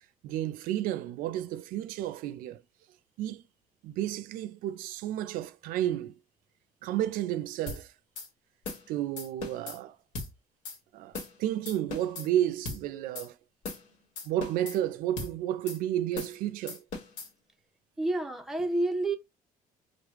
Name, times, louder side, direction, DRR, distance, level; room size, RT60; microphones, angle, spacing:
voice 1, 0.2-2.6 3.2-3.4 3.8-6.2 6.8-7.9 8.9-10.0 10.9-13.3 14.3-16.8, right 12 dB, 85° right, 0.4 m, -32 dB
sound 1, 7.7-7.8 8.2-8.3 8.7-8.9 9.2-9.8 10.2-10.3 10.7-10.8 11.1-11.4 11.7-12.3 12.7-12.8 13.2-13.3 13.6-13.9 14.2-14.8 15.2-15.3 15.7-15.8 16.2-16.4 16.7-17.3, left 3 dB, 65° left, 1.1 m, -38 dB
voice 2, 18.0-19.2, right 2 dB, ahead, 0.5 m, -29 dB
4.9 x 2.0 x 3.0 m
cardioid pair, 165°, 14 cm